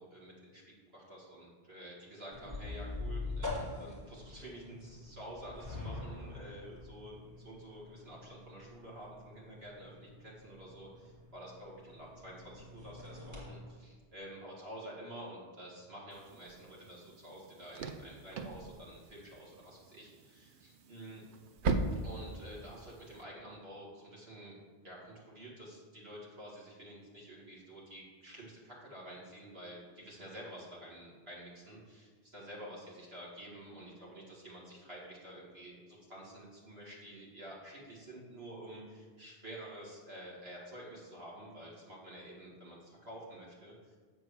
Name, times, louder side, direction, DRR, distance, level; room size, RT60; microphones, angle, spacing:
voice 1, 0.0-21.2 21.9-24.6 24.8-44.0, right 1 dB, 80° right, -5 dB, 2.4 m, -49 dB
sound 1, 2.3-13.5, left 2 dB, 35° right, 2.8 m, -45 dB
sound 2, 16.1-23.2, right 3 dB, 60° right, 0.7 m, -40 dB
7.5 x 4.6 x 6.4 m, 1.5 s
omnidirectional pair, 1.0 m